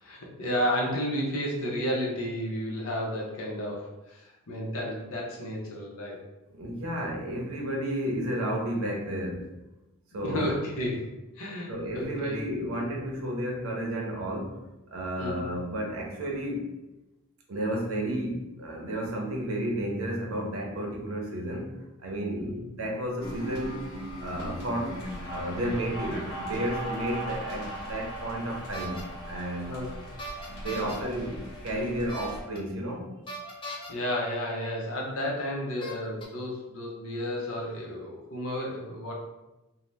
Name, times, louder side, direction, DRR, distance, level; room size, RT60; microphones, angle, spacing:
voice 1, 0.0-4.2 4.5-6.2 10.2-11.1 11.4-12.4 15.2-15.5 22.4-22.7 29.7-29.9 30.8-30.9 33.9-39.1, equal, 80° left, -2 dB, 0.7 m, -32 dB
voice 2, 6.5-9.5 10.1-10.5 11.7-14.6 14.9-16.7 17.5-23.8 24.2-25.0 25.3-29.7 30.5-33.1, right 1 dB, 75° right, 0 dB, 0.6 m, -32 dB
sound 1, 23.2-32.4, equal, 55° left, 1.2 m, -38 dB
sound 2, 28.7-29.0 30.2-31.0 32.1-32.6 33.3-33.9 35.0-35.1 35.8-36.2, right 1 dB, 25° left, 0.4 m, -38 dB
2.7 x 2.1 x 3.2 m, 1.0 s
head